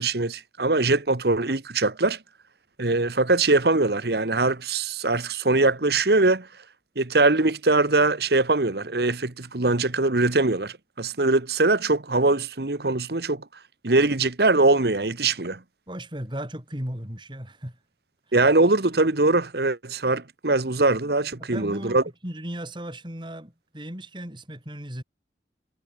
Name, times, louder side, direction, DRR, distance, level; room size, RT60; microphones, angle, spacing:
voice 1, 0.0-2.2 2.8-6.5 7.0-13.4 13.8-15.6 18.3-22.0, right 2 dB, 60° right, 1.3 m, -22 dB
voice 2, 15.9-17.8 21.4-25.0, right 1 dB, 25° right, 5.1 m, -36 dB
head